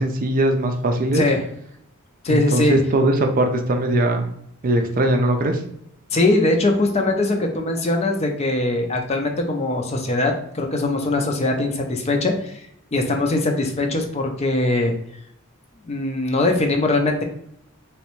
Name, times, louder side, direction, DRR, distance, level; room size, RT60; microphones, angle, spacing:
voice 1, 0.0-1.3 2.3-4.3 4.6-5.6, right 1 dB, 40° right, 4 dB, 0.5 m, -20 dB
voice 2, 2.2-2.8 6.1-14.9 15.9-17.2, left 2 dB, 30° left, 3 dB, 0.5 m, -21 dB
3.3 x 3.1 x 3.1 m, 0.72 s
head